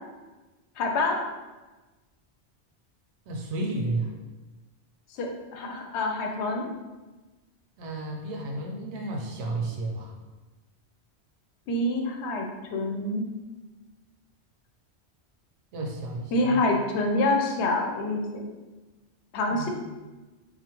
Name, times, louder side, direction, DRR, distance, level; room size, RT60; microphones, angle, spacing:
voice 1, 0.8-1.2 5.1-6.7 11.7-13.3 16.3-18.4 19.3-19.7, left 2 dB, 80° left, 2 dB, 0.8 m, -26 dB
voice 2, 3.3-4.1 7.8-10.1 15.7-16.6 19.5-19.7, right 2 dB, 85° right, 0 dB, 1.0 m, -32 dB
4.0 x 2.6 x 2.9 m, 1.2 s
omnidirectional pair, 1.1 m